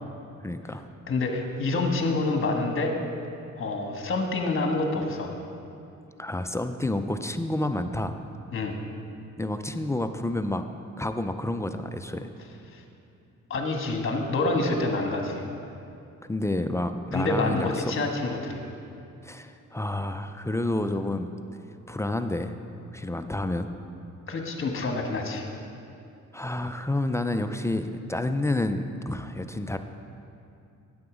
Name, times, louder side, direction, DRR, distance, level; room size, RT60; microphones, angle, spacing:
voice 1, 0.4-0.8 6.2-8.1 9.4-10.6 11.0-12.3 16.3-17.7 19.2-21.3 21.9-22.5 22.9-23.7 26.3-29.8, left 1 dB, 10° left, 8 dB, 0.4 m, -29 dB
voice 2, 1.1-2.9 3.6-5.3 8.5-8.8 12.7-12.8 13.5-15.5 17.1-18.6 24.3-25.5, left 2 dB, 45° left, 3 dB, 1.4 m, -27 dB
9.5 x 7.9 x 4.9 m, 2.7 s
cardioid pair, 90°, 30 cm